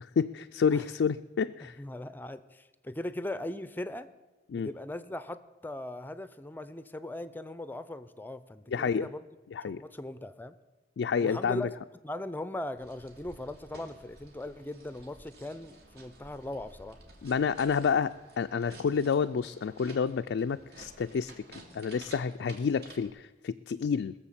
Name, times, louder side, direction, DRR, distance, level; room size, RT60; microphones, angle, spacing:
voice 1, 0.0-1.8 4.5-4.7 8.7-9.1 9.5-9.8 11.0-11.7 17.2-21.4 21.7-24.1, left 6 dB, 85° left, 8 dB, 0.4 m, -29 dB
voice 2, 1.8-4.1 4.6-9.2 9.7-10.6 11.2-11.7 12.0-17.0, left 1 dB, 10° left, 13 dB, 0.5 m, -39 dB
sound 1, 12.8-23.1, right 2 dB, 65° right, 2.3 m, -53 dB
20.5 x 7.1 x 7.3 m, 1.1 s
head